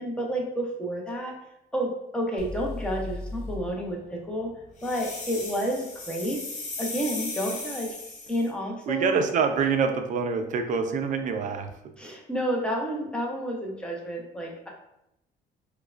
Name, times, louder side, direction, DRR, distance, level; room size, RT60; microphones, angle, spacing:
voice 1, 0.0-1.3 1.7-4.5 4.8-6.4 6.8-8.0 8.3-9.2 12.0-14.7, equal, 5° left, -2 dB, 0.7 m, -30 dB
sound 1, 2.4-6.3, left 2 dB, 80° left, 1.0 m, -39 dB
sound 2, 4.8-8.5, left 3 dB, 45° left, 0.8 m, -37 dB
voice 2, 8.9-11.7, right 6 dB, 50° right, 7 dB, 0.4 m, -25 dB
4.5 x 2.2 x 2.4 m, 0.82 s
cardioid pair, 110°, 17 cm